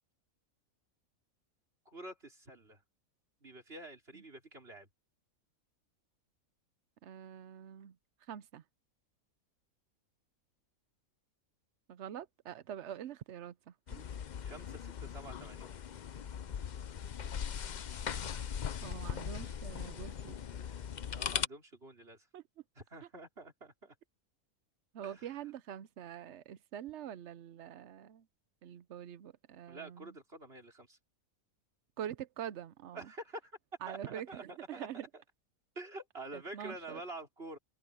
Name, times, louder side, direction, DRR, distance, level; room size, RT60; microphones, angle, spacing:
voice 1, 1.8-2.8 3.4-4.9 14.4-15.7 21.1-22.3 22.8-23.9 25.0-25.3 29.7-31.0 32.9-33.6 33.9-34.9 35.1-35.2 35.7-37.6, right 2 dB, 40° right, 5.0 m, -48 dB
voice 2, 7.0-8.0 8.3-8.6 11.9-14.0 18.8-20.4 22.3-22.4 24.9-28.3 28.6-30.1 32.0-33.1 33.8-35.0 36.3-37.0, right 10 dB, 60° right, 0.9 m, -45 dB
sound 1, 13.9-21.5, left 8 dB, 55° left, 0.5 m, -39 dB
omnidirectional pair, 1.5 m